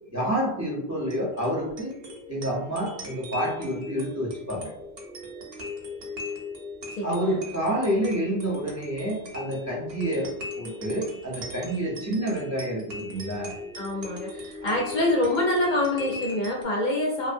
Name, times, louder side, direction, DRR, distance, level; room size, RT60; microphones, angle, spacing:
voice 1, 0.1-1.9 2.3-4.7 7.0-13.5 14.6-14.7, right 1 dB, 20° right, -4 dB, 0.5 m, -28 dB
sound 1, 0.9-16.6, left 2 dB, 75° right, 0.8 m, -39 dB
voice 2, 6.9-7.4 13.7-17.3, left 1 dB, 55° left, -2 dB, 0.6 m, -26 dB
2.6 x 2.1 x 2.6 m, 0.74 s
omnidirectional pair, 1.0 m